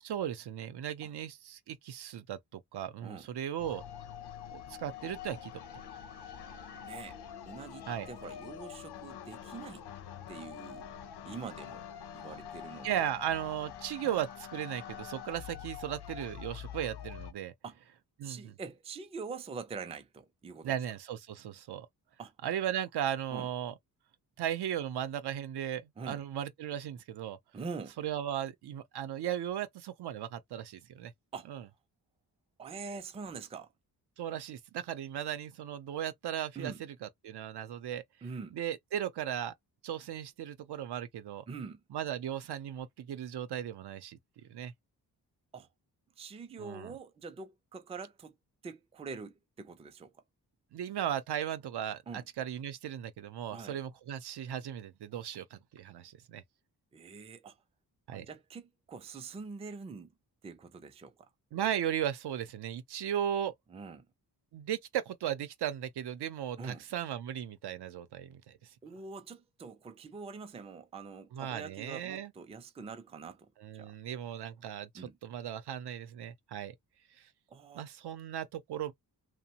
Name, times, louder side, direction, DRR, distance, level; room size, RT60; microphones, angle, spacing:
voice 1, 0.0-3.8 4.5-5.5 7.9-8.1 12.8-17.5 18.2-18.5 20.6-21.9 22.4-23.7 24.4-27.4 28.0-31.1 31.5-31.6 34.2-38.0 38.5-39.5 39.8-41.4 41.9-44.7 46.6-47.0 50.7-56.4 58.1-58.3 61.5-63.5 64.5-68.7 71.3-72.3 73.6-76.7 77.2-77.3 77.7-78.9, right 10 dB, 80° right, 0.7 m, -36 dB
sound 1, 3.6-17.3, left 9 dB, 90° left, 0.7 m, -45 dB
voice 2, 6.8-7.2 7.5-9.9 10.3-10.9 11.3-11.9 12.1-13.0 14.0-14.1 17.6-17.8 18.2-20.7 22.2-22.3 23.3-23.5 26.0-26.2 27.5-28.0 31.3-31.5 32.6-33.7 36.6-36.8 38.2-38.6 41.5-41.8 45.5-45.7 46.2-48.3 48.6-50.1 52.1-52.2 53.5-53.8 56.9-57.5 58.1-60.1 60.4-61.1 63.7-64.1 66.6-66.8 68.8-73.9 74.9-75.2 77.5-77.9, right 5 dB, 15° right, 0.3 m, -44 dB
2.9 x 2.1 x 2.8 m
wide cardioid pair, 155°, 39 cm